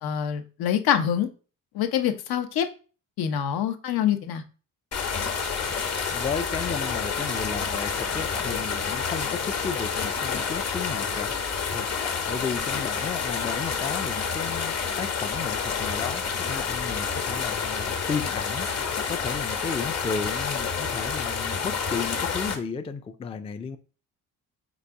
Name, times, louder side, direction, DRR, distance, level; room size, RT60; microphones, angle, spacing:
voice 1, 0.0-1.3 1.7-2.7 3.2-4.4, left 9 dB, 75° left, 0.8 m, -25 dB
sound 1, 4.9-22.6, left 5 dB, 40° left, 1.0 m, -29 dB
voice 2, 6.1-11.3 11.7-23.8, left 6 dB, 15° left, 0.3 m, -34 dB
4.0 x 2.5 x 4.6 m
cardioid pair, 95°, 37 cm